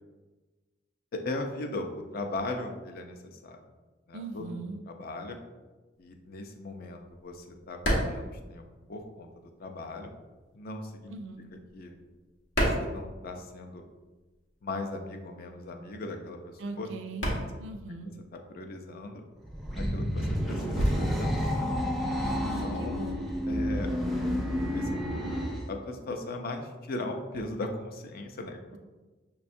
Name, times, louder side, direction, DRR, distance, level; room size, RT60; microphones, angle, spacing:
voice 1, 1.1-3.6 4.1-5.4 6.0-10.1 10.5-11.1 11.7-12.0 12.6-13.8 14.6-16.9 17.3-17.4 18.5-19.2 19.8-21.7 22.3-22.9 23.5-23.9 24.7-25.0 25.7-28.8, left 2 dB, 55° left, 4 dB, 0.4 m, -38 dB
voice 2, 4.1-4.8 11.1-11.4 16.6-17.3 17.6-18.1 22.4-23.2, right 2 dB, 80° right, 6 dB, 0.4 m, -39 dB
sound 1, 6.0-9.4 9.6-13.8 14.0-22.8, equal, 80° left, 0.9 m, -33 dB
sound 2, 19.4-25.7, equal, ahead, 0.4 m, -30 dB
5.8 x 2.3 x 2.6 m, 1.2 s
head